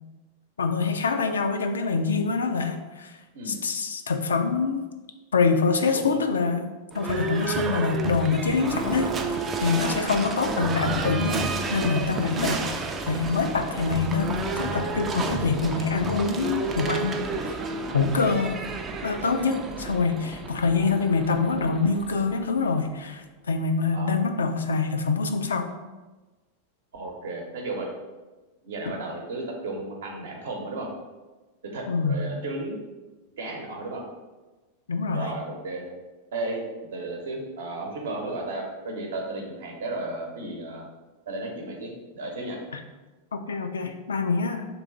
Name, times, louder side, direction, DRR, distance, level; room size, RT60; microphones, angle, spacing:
voice 1, 0.6-3.1 3.5-4.9 5.3-6.7 6.9-17.3 17.9-18.6 19.0-25.7 28.9-29.0 31.9-32.2 34.9-35.3 43.3-44.7, left 4 dB, 70° left, 7 dB, 0.3 m, -25 dB
Livestock farm animals working animals / Bell, 6.9-22.8, right 4 dB, 20° right, 0.4 m, -31 dB
voice 2, 26.9-27.9 28.6-30.9 31.7-32.7 33.4-34.0 35.1-35.9 36.3-36.6 36.9-40.8 41.3-42.6, right 2 dB, 60° right, 0 dB, 0.8 m, -34 dB
3.0 x 3.0 x 3.8 m, 1.2 s
figure-of-eight pair, 90°, 0 cm